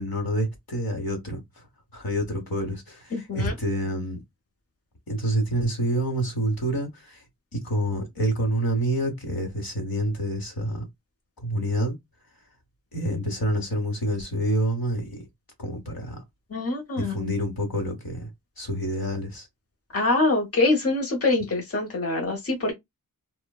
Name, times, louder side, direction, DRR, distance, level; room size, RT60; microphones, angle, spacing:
voice 1, 0.0-1.4 1.9-4.2 5.1-7.2 7.5-10.8 11.4-12.0 12.9-15.2 15.6-16.2 17.0-18.3 18.6-19.5, right 1 dB, 70° left, 1.1 m, -27 dB
voice 2, 3.1-3.5 16.5-17.3 19.9-22.7, left 2 dB, 40° left, 0.9 m, -24 dB
3.2 x 2.1 x 2.3 m
wide cardioid pair, 65°, 37 cm